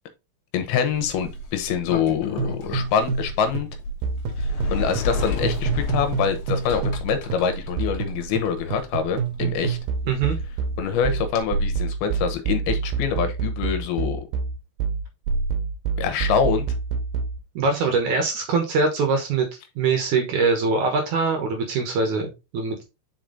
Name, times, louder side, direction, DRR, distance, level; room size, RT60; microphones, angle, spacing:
voice 1, 0.5-3.7 4.4-9.8 10.8-14.2 16.0-16.7, left 7 dB, 80° left, 2.9 m, -25 dB
Sliding door, 0.9-11.4, left 1 dB, 60° left, 2.3 m, -31 dB
sound 1, 2.4-3.3 3.6-7.0 7.3-17.4, right 5 dB, 80° right, 2.6 m, -27 dB
voice 2, 10.1-10.4 17.6-19.5 19.8-22.8, right 4 dB, 65° right, 2.2 m, -23 dB
5.9 x 5.0 x 3.8 m
omnidirectional pair, 4.5 m